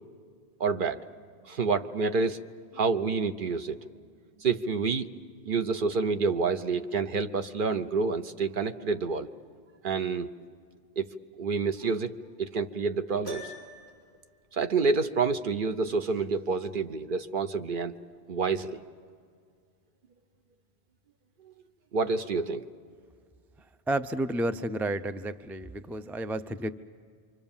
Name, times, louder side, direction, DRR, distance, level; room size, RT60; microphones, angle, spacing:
voice 1, 0.6-1.0 1.4-2.4 2.7-3.8 4.4-5.1 5.4-9.3 9.8-10.3 11.0-11.1 11.4-12.1 12.4-13.5 14.5-18.0 18.3-18.8 21.9-22.6, right 4 dB, 55° right, 8 dB, 0.9 m, -28 dB
Piano, 13.2-14.1, equal, 70° right, 6.0 m, -42 dB
voice 2, 23.9-26.7, right 1 dB, 5° right, 10 dB, 0.3 m, -31 dB
27.0 x 25.0 x 7.2 m, 2.1 s
omnidirectional pair, 1.1 m